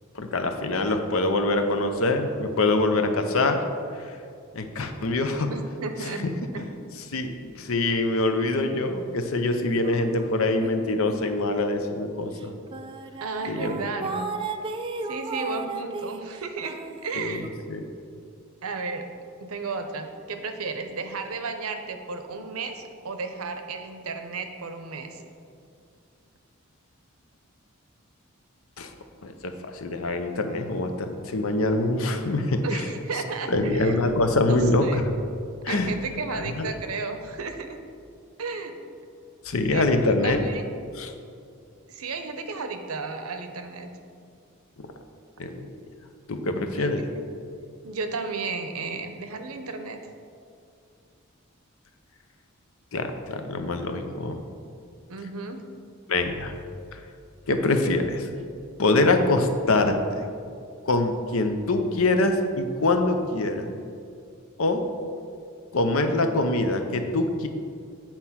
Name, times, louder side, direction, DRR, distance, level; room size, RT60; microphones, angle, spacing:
voice 1, 0.1-3.6 4.0-4.2 4.5-5.5 6.2-6.6 7.1-12.5 13.5-13.8 17.2-17.4 17.7-17.8 28.8-28.9 29.2-32.9 33.5-35.1 35.6-35.9 36.3-36.7 39.4-40.4 40.9-41.1 44.8-44.9 45.4-45.7 46.3-47.0 52.9-54.4 56.1-56.5 56.9-57.0 57.5-58.3 58.8-60.2 60.8-63.7 64.6-64.9 65.7-67.5, left 2 dB, 70° left, 6 dB, 0.7 m, -24 dB
voice 2, 5.5-6.2 6.5-6.8 13.2-14.3 15.1-17.5 18.6-19.1 19.4-25.2 32.6-34.0 34.5-35.0 35.7-37.7 38.4-38.7 39.7-39.9 40.2-40.6 41.9-43.9 46.8-46.9 47.1-47.2 47.8-50.0 55.1-55.6, right 4 dB, 85° right, 7 dB, 0.7 m, -33 dB
sound 1, 9.8-11.2 11.6-11.8 12.4-12.5 12.7-17.5, right 4 dB, 25° right, 0.3 m, -35 dB
8.1 x 4.4 x 5.7 m, 2.4 s
head